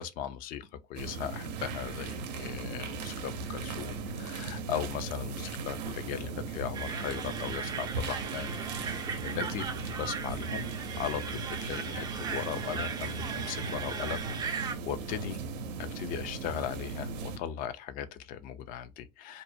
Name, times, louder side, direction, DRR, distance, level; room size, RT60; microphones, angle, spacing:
voice 1, 0.0-9.7 10.0-10.7 11.0-15.4 15.8-19.4, left 9 dB, 40° left, 0.4 m, -38 dB
sound 1, 1.0-17.4, right 4 dB, 75° right, 0.6 m, -38 dB
sound 2, 6.7-14.7, right 5 dB, 20° right, 0.4 m, -38 dB
2.5 x 2.0 x 2.5 m
hypercardioid pair, 110°, 21 cm